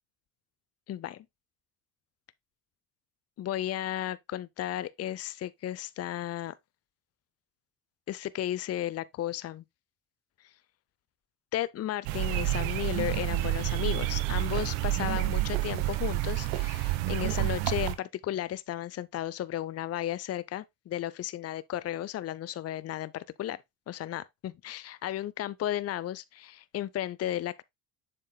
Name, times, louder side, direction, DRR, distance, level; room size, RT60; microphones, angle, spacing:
voice 1, 0.9-1.3 3.4-6.5 8.1-9.6 11.5-23.6 23.9-27.6, left 12 dB, 30° left, 0.6 m, -34 dB
sound 1, 12.1-18.0, right 17 dB, 75° right, 1.1 m, -29 dB
7.4 x 6.7 x 2.2 m
hypercardioid pair, 70°, 50 cm